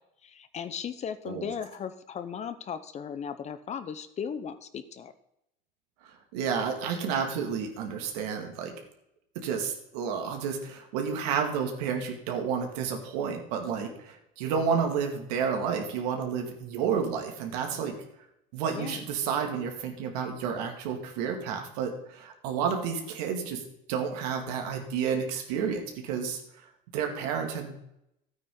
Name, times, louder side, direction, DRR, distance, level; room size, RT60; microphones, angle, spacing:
voice 1, 0.2-5.1 18.7-19.0, left 7 dB, 35° left, 12 dB, 0.9 m, -37 dB
voice 2, 6.0-8.7 9.3-17.9 18.5-23.6 23.9-26.4 26.9-27.8, right 6 dB, 90° right, 3 dB, 2.3 m, -31 dB
13.0 x 9.0 x 3.9 m, 0.81 s
supercardioid pair, 115°, 20 cm